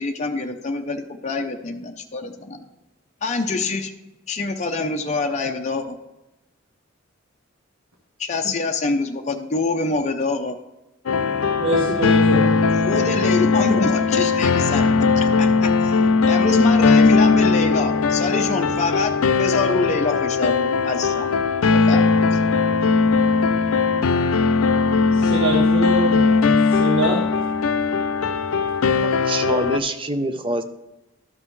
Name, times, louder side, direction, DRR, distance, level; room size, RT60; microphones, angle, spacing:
voice 1, 0.0-2.6 3.2-3.9 4.3-6.0 8.2-10.6 12.8-16.0 16.2-21.3 21.7-22.0 22.3-22.4, left 3 dB, 35° left, 3 dB, 0.6 m, -25 dB
sound 1, 11.1-29.8, left 4 dB, 90° left, 0.5 m, -19 dB
voice 2, 11.6-12.5 25.1-26.2 26.6-27.2, right 1 dB, 75° right, -1 dB, 1.3 m, -23 dB
voice 3, 29.0-30.6, right 1 dB, 25° right, 8 dB, 0.6 m, -25 dB
12.5 x 5.4 x 3.1 m, 0.96 s
head